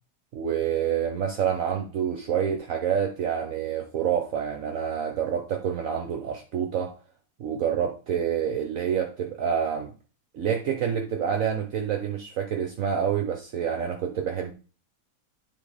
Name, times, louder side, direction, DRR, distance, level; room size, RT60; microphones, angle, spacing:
voice 1, 0.3-6.9 7.4-9.9 10.3-14.5, right 8 dB, 60° right, 1.1 m, -27 dB
9.7 x 3.6 x 4.9 m
omnidirectional pair, 1.7 m